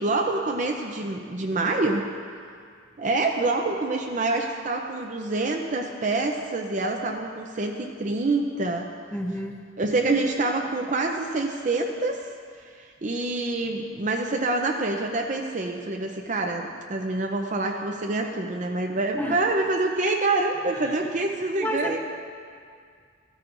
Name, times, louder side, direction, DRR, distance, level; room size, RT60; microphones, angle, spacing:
voice 1, 0.0-2.1 3.0-8.9 9.8-12.3 12.6-22.0, right 2 dB, 40° right, 2 dB, 0.6 m, -26 dB
voice 2, 9.1-9.6 19.2-19.4 20.8-20.9 21.6-22.0, equal, 10° left, 3 dB, 0.7 m, -29 dB
15.5 x 13.5 x 2.6 m, 2.2 s
head